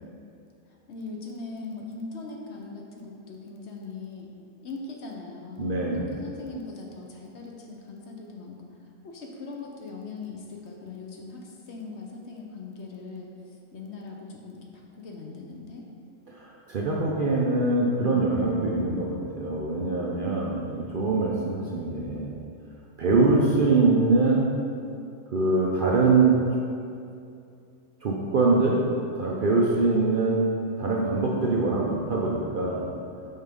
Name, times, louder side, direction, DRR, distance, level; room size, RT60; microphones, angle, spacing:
voice 1, 0.9-4.3 4.6-8.7 9.0-14.7 14.9-15.9, left 3 dB, 60° left, 0 dB, 0.9 m, -40 dB
voice 2, 5.6-6.1 16.3-22.3 23.0-24.5 25.3-26.4 28.0-28.8 29.1-30.5 30.8-32.9, right 3 dB, 55° right, -4 dB, 0.6 m, -23 dB
5.5 x 3.5 x 5.2 m, 2.5 s
omnidirectional pair, 1.4 m